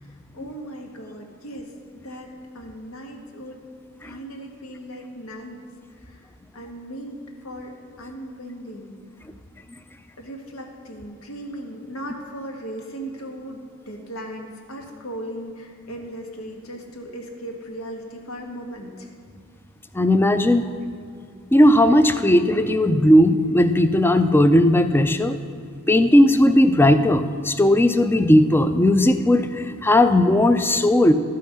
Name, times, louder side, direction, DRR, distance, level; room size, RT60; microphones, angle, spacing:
voice 1, 0.0-3.6 4.0-5.6 5.9-6.3 6.5-7.7 8.0-8.9 10.2-19.1, right 1 dB, 90° left, 2 dB, 1.5 m, -37 dB
voice 2, 19.9-20.7 21.5-25.4 25.9-31.1, left 1 dB, 10° left, 10 dB, 0.4 m, -17 dB
12.5 x 5.7 x 6.4 m, 2.5 s
head